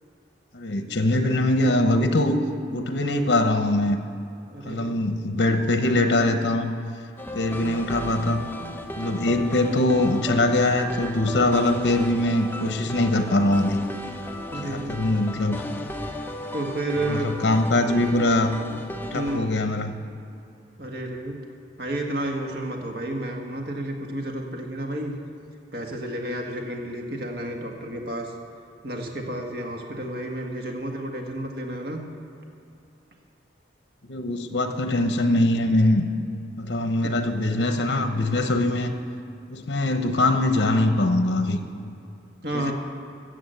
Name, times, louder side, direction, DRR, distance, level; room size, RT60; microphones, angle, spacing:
voice 1, 0.5-2.4 2.7-4.0 4.7-6.7 7.3-8.5 9.0-13.8 14.6-15.6 17.1-18.5 19.1-19.9 34.1-36.0 36.6-38.9 39.5-41.6 42.5-42.7, left 1 dB, 70° left, 7 dB, 0.9 m, -22 dB
voice 2, 4.5-4.9 14.5-15.0 16.5-17.3 19.1-19.6 20.8-21.4 21.8-25.1 25.7-28.3 28.8-32.0 37.0-37.1 42.4-42.7, right 1 dB, 60° right, 1 dB, 1.7 m, -31 dB
sound 1, 7.2-19.4, left 1 dB, 10° left, 0.7 m, -35 dB
14.5 x 7.3 x 8.0 m, 2.7 s
head